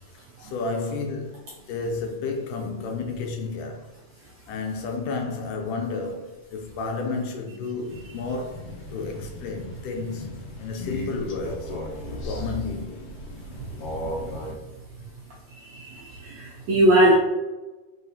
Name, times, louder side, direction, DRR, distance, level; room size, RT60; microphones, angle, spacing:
voice 1, 0.4-1.4 1.7-3.9 4.5-11.7 12.1-13.1, left 4 dB, 80° left, 2.1 m, -31 dB
Crow, 7.9-14.5, equal, 65° left, 1.6 m, -37 dB
voice 2, 15.7-17.1, right 1 dB, 80° right, 1.6 m, -20 dB
5.0 x 3.9 x 2.7 m
omnidirectional pair, 4.0 m